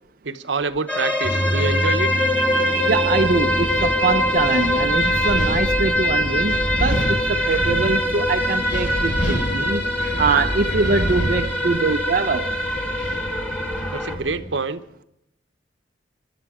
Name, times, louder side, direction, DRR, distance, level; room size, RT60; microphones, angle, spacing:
voice 1, 0.2-2.1 13.9-14.8, right 4 dB, 85° right, 0.9 m, -26 dB
sound 1, 0.9-14.2, left 1 dB, 10° left, 2.1 m, -23 dB
sound 2, 1.2-14.5, equal, 25° left, 7.1 m, -32 dB
Wind, 2.9-14.4, equal, 50° left, 5.6 m, -29 dB
voice 2, 2.9-9.8 10.2-12.5, right 4 dB, 50° right, 0.5 m, -23 dB
25.5 x 11.0 x 4.9 m
head